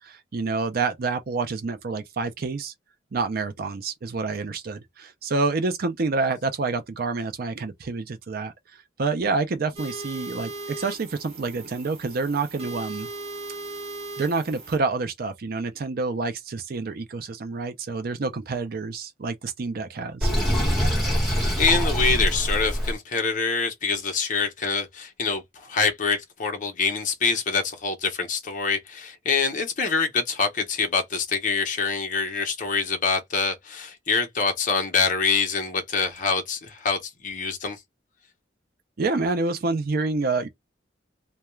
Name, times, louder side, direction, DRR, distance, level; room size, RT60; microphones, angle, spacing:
voice 1, 0.0-2.7 3.1-8.5 9.0-13.1 14.2-20.3 39.0-40.5, right 3 dB, 50° right, 0.5 m, -28 dB
sound 1, 9.8-14.8, right 2 dB, 35° right, 0.9 m, -38 dB
Sink (filling or washing), 20.2-22.9, equal, ahead, 1.2 m, -23 dB
voice 2, 21.3-37.8, left 5 dB, 45° left, 0.7 m, -25 dB
2.3 x 2.2 x 3.0 m
head